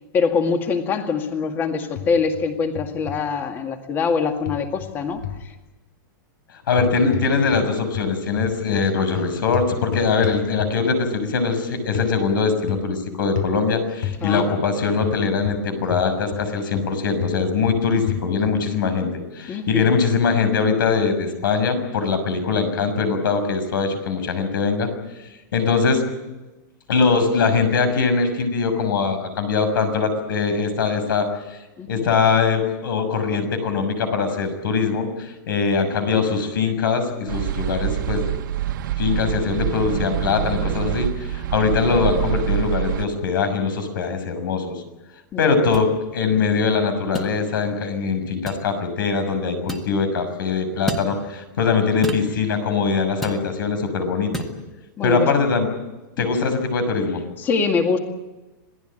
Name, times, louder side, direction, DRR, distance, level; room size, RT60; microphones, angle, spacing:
voice 1, 0.1-5.5 14.2-14.5 19.5-19.9 31.8-32.0 45.3-45.7 55.0-55.3 56.2-56.3 57.4-58.0, left 5 dB, 20° left, 5 dB, 2.1 m, -24 dB
sound 1, 2.0-2.4 2.8-3.2 4.5-5.5 6.7-7.7 7.9-11.0 11.9-12.1 12.7-13.0 13.4-13.6 14.0-14.2 15.0-16.5 16.7-18.7, left 10 dB, 65° left, 2.8 m, -30 dB
voice 2, 6.7-19.1 19.3-24.9 25.2-26.0 26.9-31.6 31.9-38.2 39.0-44.7 45.4-54.3 55.0-55.7 56.2-57.2, left 5 dB, 85° left, 9 dB, 6.4 m, -22 dB
sound 2, 37.3-43.1, right 12 dB, 70° right, 1.6 m, -25 dB
sound 3, 45.7-45.9 47.1-47.3 48.5-48.7 49.7-49.9 50.9-51.1 52.0-52.3 53.2-53.4 54.3-54.5, right 1 dB, ahead, 1.7 m, -29 dB
27.0 x 18.0 x 9.0 m, 1.1 s
supercardioid pair, 170°, 11 cm